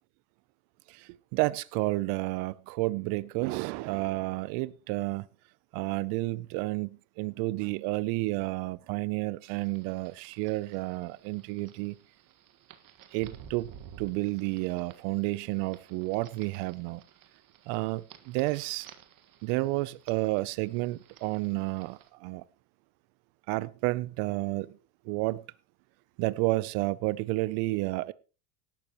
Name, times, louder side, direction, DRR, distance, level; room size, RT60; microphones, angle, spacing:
voice 1, 0.9-5.3 5.7-12.0 13.1-13.7 14.0-17.0 17.7-18.9 19.4-22.4 23.5-24.8 25.0-25.4 26.2-28.1, right 21 dB, 65° right, 0.6 m, -31 dB
sound 1, 9.4-22.1, right 9 dB, 45° right, 1.7 m, -54 dB
17.5 x 12.0 x 3.0 m
supercardioid pair, 105°, 45 cm